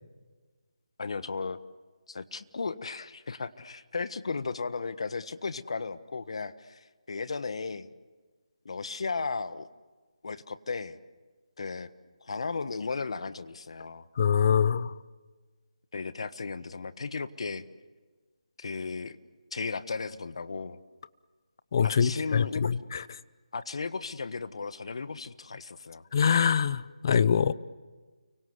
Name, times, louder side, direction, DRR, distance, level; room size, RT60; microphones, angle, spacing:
voice 1, 1.0-1.6 2.1-7.9 8.6-9.7 10.2-11.0 11.6-11.9 12.2-14.1 15.9-17.7 18.6-19.2 19.5-20.8 21.8-22.8 23.5-26.0, left 4 dB, 55° left, 13 dB, 1.4 m, -35 dB
voice 2, 14.2-14.9 21.7-23.0 26.1-27.5, left 7 dB, 35° left, 17 dB, 0.8 m, -24 dB
30.0 x 24.5 x 8.0 m, 1.4 s
figure-of-eight pair, 160°, 4 cm